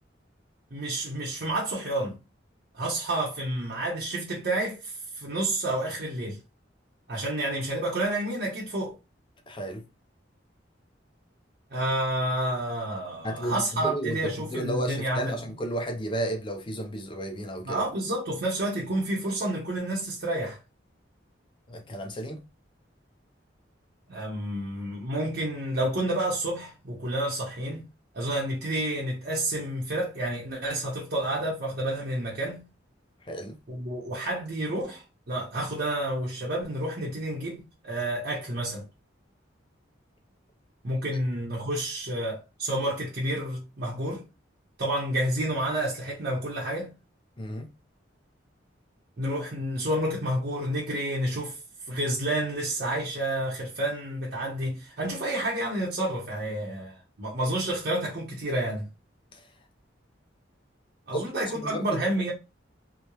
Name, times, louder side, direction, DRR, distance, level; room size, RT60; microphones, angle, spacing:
voice 1, 0.7-2.2 2.7-6.4 7.1-9.0 11.7-15.3 17.6-20.6 24.1-27.8 28.1-32.6 33.7-38.8 40.8-44.2 44.8-46.9 49.2-51.6 51.9-58.9 61.1-62.3, right 1 dB, 55° right, 0.7 m, -30 dB
voice 2, 9.5-9.9 13.2-17.8 21.7-22.5 33.3-33.6 47.4-47.7 59.3-59.4 61.1-61.3 61.6-62.0, right 1 dB, 25° left, 0.5 m, -33 dB
2.9 x 2.1 x 2.2 m
head